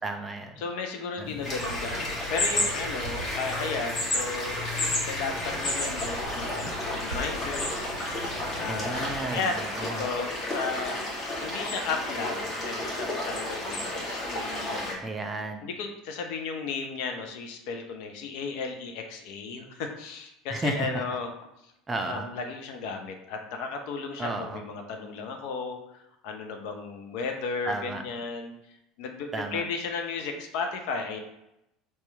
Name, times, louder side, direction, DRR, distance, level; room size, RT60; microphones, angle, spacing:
voice 1, 0.0-0.6 1.2-1.3 8.7-10.1 15.0-15.7 20.5-20.9 21.9-22.3 24.2-24.6 27.7-28.0 29.3-29.6, right 2 dB, 20° right, 5 dB, 0.4 m, -33 dB
voice 2, 0.6-4.6 5.0-8.0 8.5-11.0 11.4-15.0 15.6-21.3 22.0-25.8 26.2-28.5 29.0-31.2, left 4 dB, 60° left, 4 dB, 0.4 m, -34 dB
sound 1, 1.2-9.2, left 2 dB, 80° left, 1.1 m, -40 dB
sound 2, 1.4-14.9, left 1 dB, 40° left, 1.2 m, -31 dB
2.8 x 2.1 x 3.3 m, 0.85 s
figure-of-eight pair, 70°, 0 cm